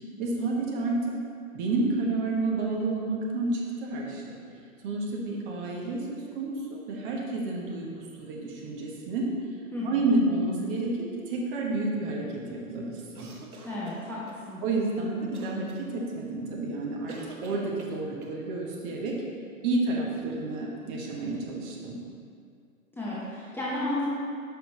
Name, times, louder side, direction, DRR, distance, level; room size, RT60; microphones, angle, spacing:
voice 1, 0.2-1.0 1.5-4.4 4.8-9.3 9.8-13.3 14.6-19.1 19.6-22.0, right 2 dB, 35° right, -2 dB, 1.4 m, -30 dB
voice 2, 9.7-10.1 13.6-14.2 14.5-14.6 22.9-24.1, left 1 dB, 5° left, -9 dB, 0.8 m, -32 dB
sound 1, 13.1-14.4 15.3-15.8 17.1-18.4, right 3 dB, 85° right, 1.1 m, -46 dB
9.1 x 5.8 x 3.3 m, 2.3 s
figure-of-eight pair, 115°, 42 cm